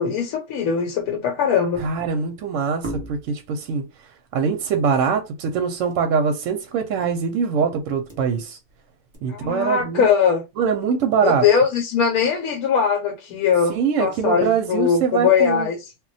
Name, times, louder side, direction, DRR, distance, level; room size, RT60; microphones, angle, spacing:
voice 1, 0.0-1.8 9.3-10.4 11.2-15.9, left 7 dB, 80° left, 1.0 m, -20 dB
sound 1, 1.7-2.2 2.8-3.5 5.9-6.1 6.4-6.5 7.0-7.3 7.8-8.7 9.1-9.2, right 1 dB, 20° right, 0.9 m, -37 dB
voice 2, 1.8-3.9 4.3-8.6 9.2-10.1 10.6-11.5 13.7-15.7, right 6 dB, 70° right, 0.8 m, -23 dB
2.3 x 2.1 x 3.9 m
omnidirectional pair, 1.5 m